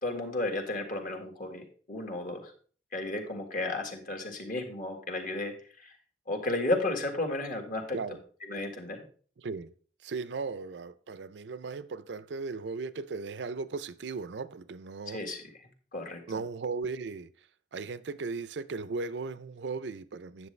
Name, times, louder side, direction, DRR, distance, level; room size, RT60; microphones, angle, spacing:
voice 1, 0.0-2.5 2.9-6.0 6.3-8.0 8.5-9.0 15.1-15.4 15.9-16.2, left 2 dB, 50° left, 1.7 m, -33 dB
voice 2, 9.4-9.7 10.0-15.2 16.3-17.3 17.7-20.5, right 4 dB, 75° right, 0.5 m, -37 dB
9.4 x 7.5 x 3.2 m
head